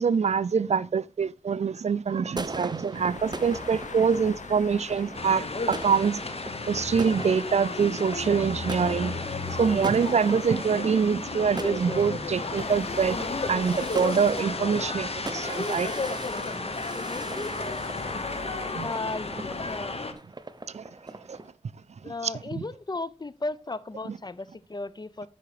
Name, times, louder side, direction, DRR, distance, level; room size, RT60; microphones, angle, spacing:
voice 1, 0.0-6.2 6.7-9.2 9.6-13.2 13.5-15.9 18.7-18.9 20.7-20.9 21.3-21.4 22.2-22.6 24.1-24.2, right 6 dB, 70° right, 0.4 m, -25 dB
sound 1, 2.1-21.5, right 2 dB, 35° right, 0.8 m, -41 dB
sound 2, 2.9-19.8, left 4 dB, 90° left, 0.9 m, -42 dB
sound 3, 5.1-20.1, left 3 dB, 60° left, 1.2 m, -33 dB
voice 2, 16.9-17.3 18.8-20.0 22.0-25.3, left 3 dB, 35° left, 0.6 m, -35 dB
8.7 x 5.7 x 5.0 m
cardioid pair, 45°, 12 cm